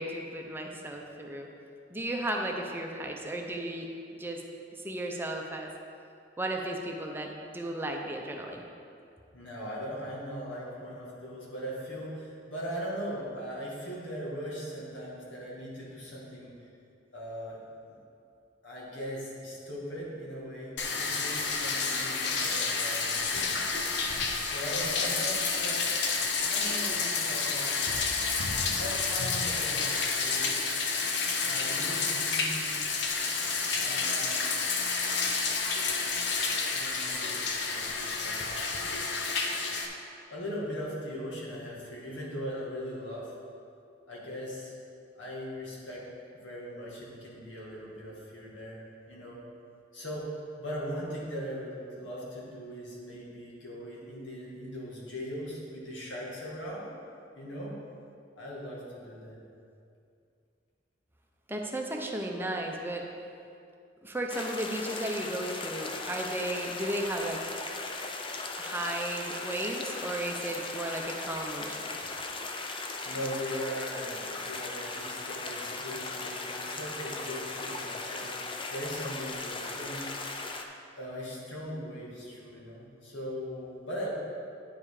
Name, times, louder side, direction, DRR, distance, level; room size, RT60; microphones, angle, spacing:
voice 1, 0.0-1.5 1.9-3.9 4.2-4.4 4.8-5.7 6.4-8.6 61.5-63.1 64.0-67.4 68.6-71.8, right 1 dB, 10° right, 1 dB, 0.6 m, -34 dB
voice 2, 9.3-16.5 17.1-17.6 17.9-18.0 18.6-23.6 24.4-25.8 26.5-27.8 28.8-30.6 31.4-32.8 33.8-34.6 36.7-39.1 40.3-43.3 44.1-44.7 45.1-46.1 46.3-48.8 49.1-49.4 49.9-56.9 57.3-57.8 58.4-59.4 73.0-80.0 81.0-84.1, equal, 85° left, -5 dB, 2.1 m, -39 dB
Bathtub (filling or washing), 20.8-39.9, left 4 dB, 70° left, 0.8 m, -30 dB
sound 1, 64.3-80.6, left 3 dB, 30° left, 0.5 m, -38 dB
9.8 x 5.3 x 4.8 m, 2.5 s
head